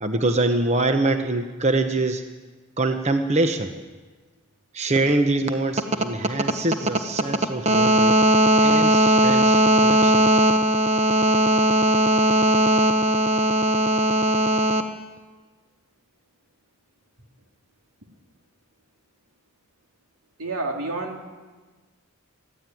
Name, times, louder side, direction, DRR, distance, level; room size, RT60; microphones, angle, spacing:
voice 1, 0.0-2.2 2.8-3.7 4.7-14.8, right 1 dB, 30° right, 6 dB, 1.0 m, -19 dB
voice 2, 20.4-21.3, right 2 dB, 85° right, 2 dB, 3.1 m, -29 dB
22.0 x 14.5 x 9.3 m, 1.4 s
head